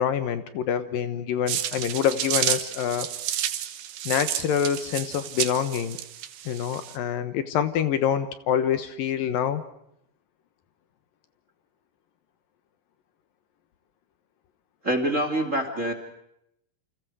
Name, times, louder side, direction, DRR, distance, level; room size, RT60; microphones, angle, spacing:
voice 1, 0.0-3.1 4.1-6.0 6.5-9.6, left 9 dB, 70° left, 11 dB, 2.8 m, -26 dB
sound 1, 1.5-7.0, right 11 dB, 75° right, 3.1 m, -31 dB
voice 2, 14.8-15.9, right 1 dB, 20° right, 6 dB, 2.7 m, -25 dB
29.0 x 28.5 x 4.9 m, 0.77 s
omnidirectional pair, 4.4 m